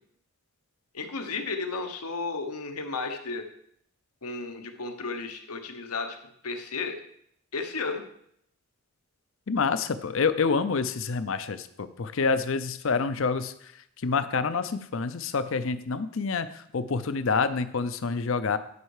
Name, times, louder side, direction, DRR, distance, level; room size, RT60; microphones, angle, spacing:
voice 1, 0.9-3.5 4.2-6.2 6.4-7.0 7.5-8.0, left 4 dB, 85° left, 6 dB, 1.1 m, -33 dB
voice 2, 9.5-13.5 14.0-18.6, left 4 dB, 60° left, 13 dB, 0.5 m, -27 dB
11.0 x 5.5 x 4.9 m, 0.70 s
head